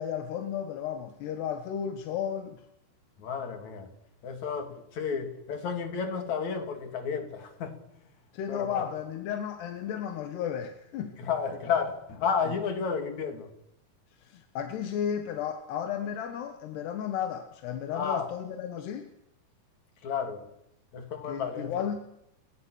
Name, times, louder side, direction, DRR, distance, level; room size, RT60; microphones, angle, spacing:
voice 1, 0.0-2.6 8.3-11.2 14.2-19.1 21.2-22.1, left 8 dB, 85° left, 3.7 m, -34 dB
voice 2, 3.2-3.9 4.2-7.8 8.5-8.8 11.2-13.5 17.9-18.3 20.0-20.5 20.9-21.9, left 6 dB, 50° left, 3.8 m, -32 dB
30.0 x 22.5 x 6.5 m
omnidirectional pair, 4.6 m